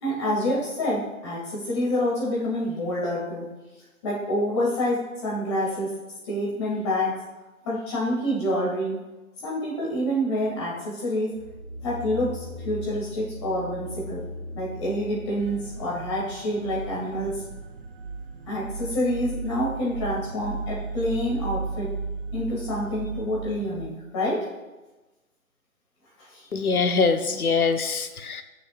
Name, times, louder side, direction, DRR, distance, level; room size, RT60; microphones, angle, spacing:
voice 1, 0.0-3.5 4.0-5.9 6.2-7.1 7.6-9.0 9.4-11.4 11.8-14.2 14.5-17.4 18.5-21.9 22.3-24.4 26.2-26.4, equal, 20° left, -5 dB, 2.3 m, -27 dB
sound 1, 11.3-15.7 16.2-16.3, left 1 dB, 10° right, 0.9 m, -38 dB
sound 2, 15.4-23.9, right 4 dB, 40° right, 0.9 m, -35 dB
voice 2, 26.5-28.4, left 4 dB, 75° left, 7 dB, 1.1 m, -23 dB
19.0 x 6.8 x 2.5 m, 1.2 s
hypercardioid pair, 165°, 43 cm